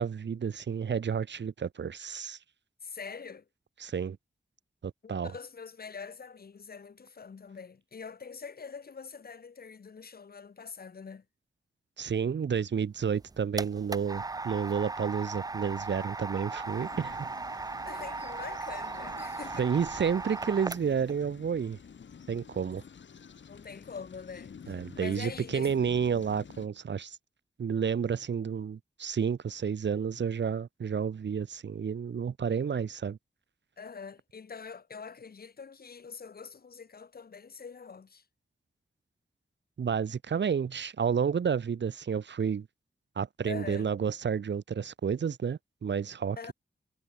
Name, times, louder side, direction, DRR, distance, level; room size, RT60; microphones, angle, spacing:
voice 1, 0.0-2.4 3.8-4.2 4.8-5.3 12.0-17.3 19.6-21.8 22.3-22.8 24.7-27.2 27.6-33.2 39.8-42.7 43.2-46.5, right 7 dB, 75° right, 1.8 m, -30 dB
voice 2, 2.8-3.4 5.0-11.2 17.8-19.7 23.5-25.7 33.8-38.2 43.4-43.9 46.4-46.5, left 5 dB, 55° left, 2.6 m, -44 dB
sound 1, 13.0-21.1, right 3 dB, 20° right, 0.5 m, -38 dB
sound 2, 16.6-26.7, left 6 dB, 85° left, 6.4 m, -50 dB
wide cardioid pair, 145°, 19 cm